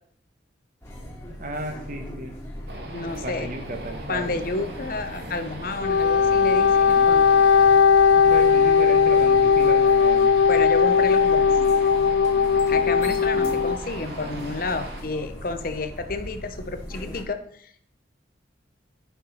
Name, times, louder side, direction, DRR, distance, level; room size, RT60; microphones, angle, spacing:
sound 1, 0.8-17.2, equal, 15° left, 1.7 m, -38 dB
voice 1, 1.4-2.4 3.2-4.3 8.3-10.3, right 1 dB, 45° right, 5 dB, 1.2 m, -34 dB
sound 2, 2.7-15.0, right 2 dB, 60° right, 1.4 m, -39 dB
voice 2, 2.9-3.5 4.1-7.3 10.5-11.4 12.7-17.9, left 3 dB, 50° left, 9 dB, 0.7 m, -30 dB
Wind instrument woodwind instrument, 5.7-13.8, left 6 dB, 80° left, 0.4 m, -18 dB
9.3 x 5.9 x 4.2 m, 0.63 s
head